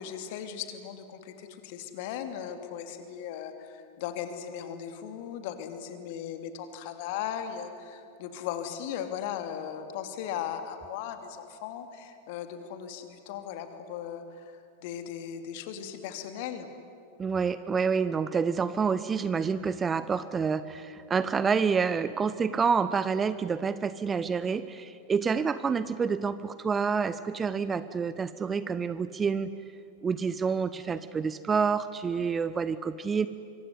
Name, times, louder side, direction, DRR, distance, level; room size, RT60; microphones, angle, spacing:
voice 1, 0.0-16.7, left 9 dB, 50° left, 8 dB, 2.7 m, -37 dB
voice 2, 17.2-29.5 30.0-33.3, right 5 dB, 20° right, 14 dB, 0.8 m, -28 dB
25.0 x 24.5 x 9.8 m, 2.5 s
figure-of-eight pair, 90°, 0 cm